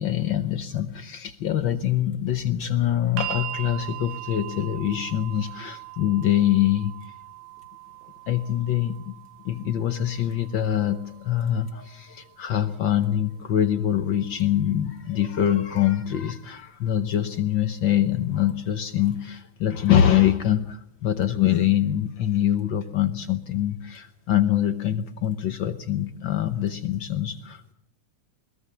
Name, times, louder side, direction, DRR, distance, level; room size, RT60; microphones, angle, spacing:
voice 1, 0.0-6.9 8.3-9.1 9.4-27.7, left 11 dB, 70° left, 9 dB, 1.1 m, -24 dB
sound 1, 3.2-15.3 16.3-16.4, right 15 dB, 75° right, 2.4 m, -41 dB
21.5 x 20.5 x 7.2 m, 0.74 s
omnidirectional pair, 3.4 m